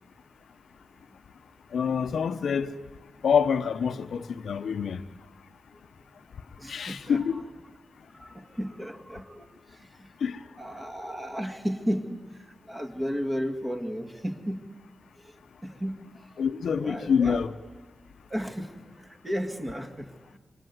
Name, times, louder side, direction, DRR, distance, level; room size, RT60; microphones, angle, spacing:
voice 1, 1.7-2.7 3.2-5.0 6.7-7.4 10.2-10.4 16.4-17.5, left 6 dB, 75° left, 0.9 m, -26 dB
voice 2, 6.6-7.4 8.1-10.1 10.6-14.8 15.2-16.3 16.7-17.4 18.3-20.4, equal, 15° right, 1.9 m, -34 dB
26.5 x 24.0 x 9.4 m
wide cardioid pair, 160°, 0 cm